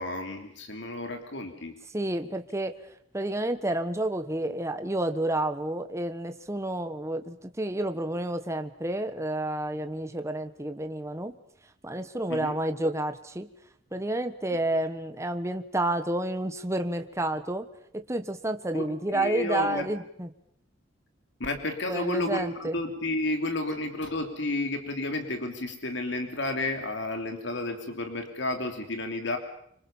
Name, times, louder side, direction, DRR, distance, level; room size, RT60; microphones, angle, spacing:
voice 1, 0.0-1.8 12.3-12.6 18.7-19.9 21.4-29.4, left 2 dB, 65° left, 5 dB, 3.2 m, -31 dB
voice 2, 1.9-2.7 3.1-11.4 11.8-13.5 13.9-17.7 17.9-20.3 21.9-22.8, right 1 dB, 15° right, 7 dB, 1.3 m, -30 dB
26.0 x 26.0 x 7.2 m, 0.69 s
head